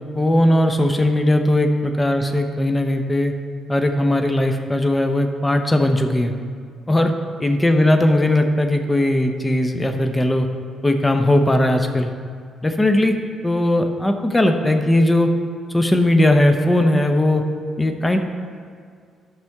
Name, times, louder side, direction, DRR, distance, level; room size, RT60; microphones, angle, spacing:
voice 1, 0.0-3.3 3.7-6.3 6.9-7.1 7.4-10.5 10.8-12.1 12.6-15.3 15.7-17.4 17.8-18.2, left 1 dB, 15° left, 6 dB, 0.8 m, -18 dB
12.0 x 6.0 x 3.6 m, 2.1 s
cardioid pair, 90°, 0 cm